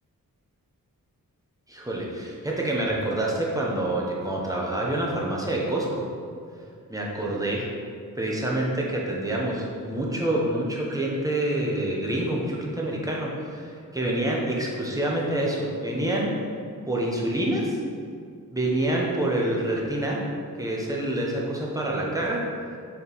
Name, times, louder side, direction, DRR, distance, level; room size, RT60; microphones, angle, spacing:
voice 1, 1.7-6.0 6.9-7.7 8.2-16.3 16.9-17.8 18.5-20.2 20.6-22.4, right 1 dB, 10° right, -3 dB, 1.0 m, -27 dB
7.0 x 4.3 x 3.5 m, 2.2 s
wide cardioid pair, 125°, 34 cm